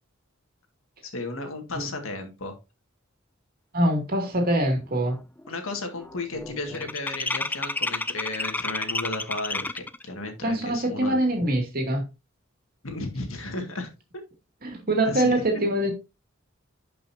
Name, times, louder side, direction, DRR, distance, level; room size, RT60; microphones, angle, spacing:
voice 1, 1.0-2.6 5.5-11.1 12.8-13.9 15.0-15.6, left 2 dB, 80° left, 2.0 m, -34 dB
voice 2, 3.7-5.2 10.4-12.0 14.6-15.9, right 1 dB, 45° right, 2.4 m, -24 dB
sound 1, 4.3-4.4 4.8-5.1 5.4-10.0, left 2 dB, 10° left, 0.4 m, -31 dB
11.5 x 5.5 x 2.7 m
head